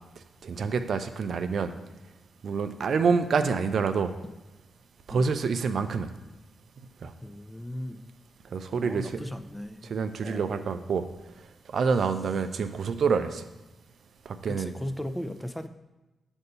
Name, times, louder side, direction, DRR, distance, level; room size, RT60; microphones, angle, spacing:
voice 1, 0.4-1.7 2.4-4.1 5.1-6.1 7.0-7.1 8.5-9.2 9.8-11.0 11.7-13.4 14.3-14.7, right 5 dB, 65° right, 9 dB, 0.4 m, -27 dB
voice 2, 7.2-8.1 8.8-9.9 10.2-10.5 14.5-15.7, left 1 dB, 10° left, 10 dB, 0.5 m, -37 dB
6.6 x 2.7 x 5.4 m, 1.1 s
supercardioid pair, 40°, 0 cm